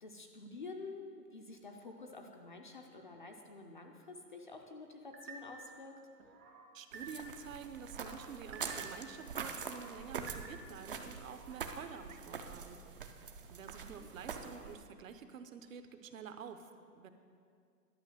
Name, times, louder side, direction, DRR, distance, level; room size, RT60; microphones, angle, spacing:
voice 1, 0.0-5.9 13.7-14.1, left 3 dB, 35° left, 3 dB, 0.5 m, -49 dB
sound 1, 5.1-5.7 6.2-7.4 7.8-9.1 9.5-10.9 11.3-11.8, right 4 dB, 70° right, 2.2 m, -52 dB
voice 2, 6.7-12.8 13.5-17.1, right 7 dB, 55° right, 9 dB, 0.8 m, -49 dB
sound 2, 6.9-14.8, right 5 dB, 35° right, 0.5 m, -45 dB
11.0 x 5.5 x 7.7 m, 2.3 s
hypercardioid pair, 160°, 49 cm